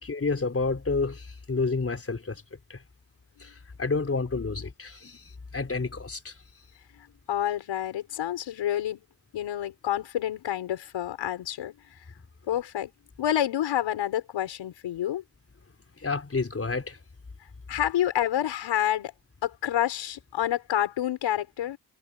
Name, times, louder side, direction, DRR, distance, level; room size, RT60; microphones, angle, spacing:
voice 1, 0.0-2.4 2.7-2.8 3.4-3.5 3.8-5.2 5.5-6.3 16.0-17.0, left 4 dB, 30° left, 4.2 m, -29 dB
voice 2, 6.9-9.0 9.3-12.0 12.5-12.9 13.2-15.2 17.7-19.1 19.4-21.8, left 11 dB, 90° left, 6.2 m, -28 dB
cardioid pair, 70°, 44 cm